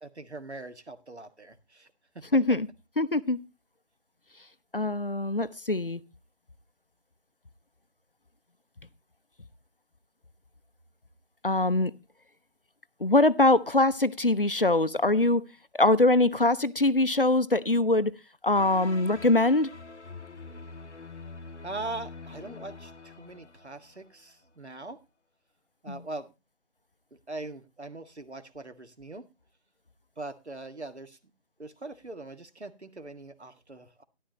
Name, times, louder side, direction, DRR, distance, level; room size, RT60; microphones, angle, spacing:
voice 1, 0.0-1.9 2.1-2.2 21.6-25.0 25.8-26.3 27.3-29.3 30.2-31.2 31.6-34.0, right 2 dB, 75° right, 1.7 m, -41 dB
voice 2, 2.3-2.7 3.0-3.4 4.7-6.0 11.4-11.9 13.0-15.5 15.7-18.1 18.4-19.7 25.9-26.0, left 2 dB, 55° left, 0.6 m, -23 dB
sound 1, 18.5-24.3, left 3 dB, 85° left, 0.9 m, -45 dB
13.0 x 11.0 x 2.9 m
figure-of-eight pair, 180°, 34 cm